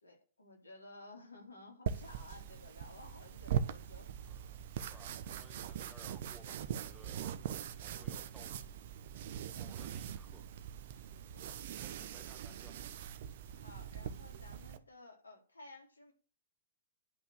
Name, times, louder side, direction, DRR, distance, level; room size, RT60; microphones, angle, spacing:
voice 1, 0.0-4.1 11.3-11.5 13.5-16.1, left 2 dB, 75° left, 1 dB, 3.8 m, -55 dB
sound 1, 1.9-14.8, right 8 dB, 50° right, 1.0 m, -41 dB
voice 2, 4.2-7.3 7.7-8.6 9.5-10.5 11.8-12.9, equal, ahead, 4 dB, 1.8 m, -60 dB
11.0 x 5.7 x 7.4 m, 0.38 s
figure-of-eight pair, 110°, 0 cm